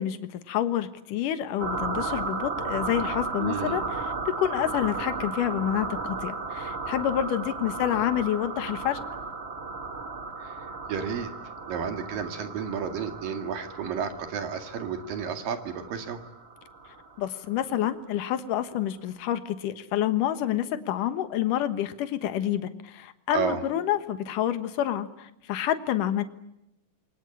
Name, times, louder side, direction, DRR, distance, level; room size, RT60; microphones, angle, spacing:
voice 1, 0.0-9.0 17.2-26.2, left 11 dB, 70° left, 11 dB, 2.9 m, -28 dB
sound 1, 1.6-17.9, right 3 dB, 30° right, 1.2 m, -35 dB
voice 2, 3.4-3.8 10.4-10.6 10.9-11.3 11.7-16.2 23.3-23.6, right 7 dB, 75° right, 7 dB, 3.8 m, -32 dB
28.5 x 24.0 x 8.7 m, 0.87 s
omnidirectional pair, 4.0 m